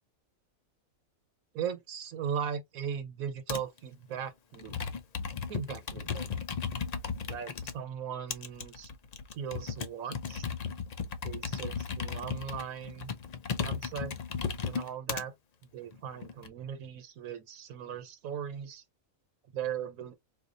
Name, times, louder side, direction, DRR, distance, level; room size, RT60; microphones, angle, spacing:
voice 1, 1.5-4.8 5.5-6.5 7.3-8.9 9.3-10.5 11.2-13.1 13.6-14.2 14.6-15.3 15.7-18.8 19.5-20.1, right 8 dB, 80° right, 1.3 m, -38 dB
Computer keyboard, 3.5-3.8 4.5-7.7 8.3-15.2 15.9-16.5, left 6 dB, 70° left, 0.3 m, -35 dB
4.4 x 2.4 x 2.5 m
omnidirectional pair, 1.4 m